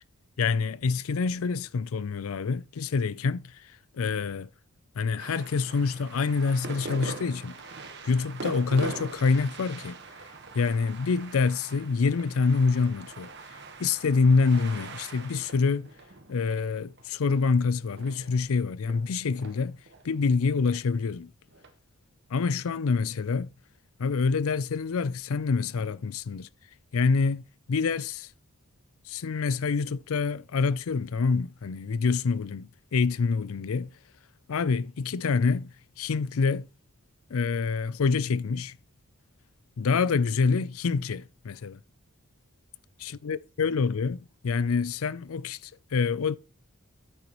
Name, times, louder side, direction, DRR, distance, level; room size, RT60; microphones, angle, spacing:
voice 1, 0.4-3.5 4.0-4.5 5.0-7.5 8.0-10.0 10.5-13.3 13.8-15.9 16.3-19.8 20.0-21.3 22.3-23.5 24.0-26.5 26.9-27.4 27.7-28.3 29.1-33.9 34.5-36.7 37.3-38.8 39.8-41.8 43.0-46.4, left 4 dB, 70° left, 0.4 m, -26 dB
sound 1, 5.2-18.4 18.9-20.8 21.5-21.7, right 3 dB, 50° right, 1.3 m, -43 dB
9.1 x 8.0 x 3.0 m
head